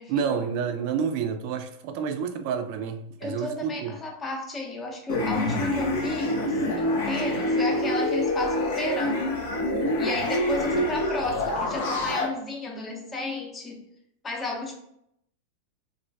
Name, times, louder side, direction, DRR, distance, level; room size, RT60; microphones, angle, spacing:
voice 1, 0.1-4.0, right 7 dB, 55° right, 8 dB, 0.3 m, -29 dB
voice 2, 3.2-9.2 10.0-13.8 14.2-14.7, left 2 dB, 20° left, 1 dB, 0.6 m, -33 dB
sound 1, 5.1-12.3, left 1 dB, 75° left, 0.5 m, -26 dB
2.3 x 2.1 x 2.5 m, 0.75 s
hypercardioid pair, 105°, 0 cm